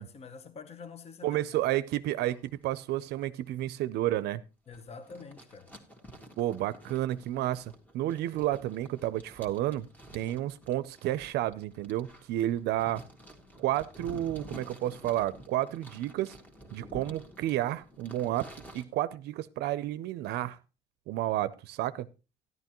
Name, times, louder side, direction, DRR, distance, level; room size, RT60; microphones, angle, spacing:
voice 1, 0.0-1.4 4.7-5.7, left 5 dB, 40° left, 1.0 m, -46 dB
voice 2, 1.2-4.4 6.4-9.9 10.1-13.0 13.6-16.4 16.7-20.6 21.1-22.1, right 14 dB, 80° right, 0.5 m, -31 dB
sound 1, 2.2-2.6 2.9-3.2 3.6-3.7 4.7-18.8, equal, 10° left, 1.6 m, -50 dB
12.5 x 11.0 x 3.0 m
cardioid pair, 110°, 17 cm